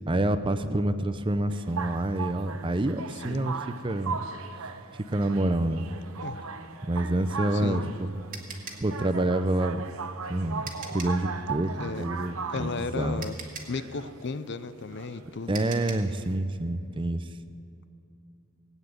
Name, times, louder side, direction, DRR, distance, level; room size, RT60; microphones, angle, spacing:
voice 1, 0.1-3.5 3.8-4.2 5.1-5.8 6.9-8.1 8.8-9.8 10.3-13.2 15.5-17.2, right 1 dB, 25° right, 11 dB, 0.5 m, -27 dB
sound 1, 1.5-16.3, right 5 dB, 80° right, 0.8 m, -38 dB
voice 2, 3.1-3.5 6.2-6.4 7.5-7.9 11.8-12.1 12.5-13.4 13.7-15.6, left 4 dB, 55° left, 13 dB, 0.6 m, -34 dB
sound 2, 7.4-11.3 12.7-12.8 13.2-16.2, right 5 dB, 40° right, 1.7 m, -43 dB
18.5 x 9.1 x 8.0 m, 2.7 s
head